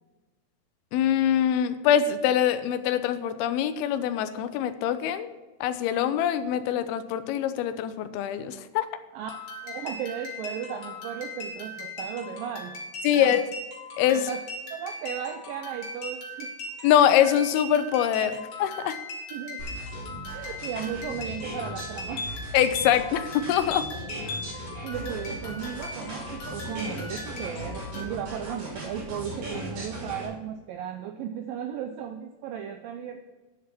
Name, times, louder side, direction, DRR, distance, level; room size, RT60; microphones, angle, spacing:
voice 1, 0.9-5.3 5.6-8.9 13.0-13.4 14.0-14.3 16.8-18.3 18.6-19.0 22.5-23.9, left 10 dB, 80° left, 11 dB, 2.4 m, -24 dB
sound 1, 9.2-28.1, left 2 dB, 50° left, 3.4 m, -39 dB
voice 2, 9.6-12.8 13.1-13.4 14.1-14.5 14.7-16.5 16.8-16.9 18.2-18.3 19.3-19.7 20.3-22.3 24.5-33.2, right 8 dB, 90° right, 7 dB, 2.0 m, -36 dB
sound 2, 19.6-30.3, right 1 dB, 65° right, 5.6 m, -38 dB
10.0 x 7.6 x 6.0 m, 1.2 s
omnidirectional pair, 4.7 m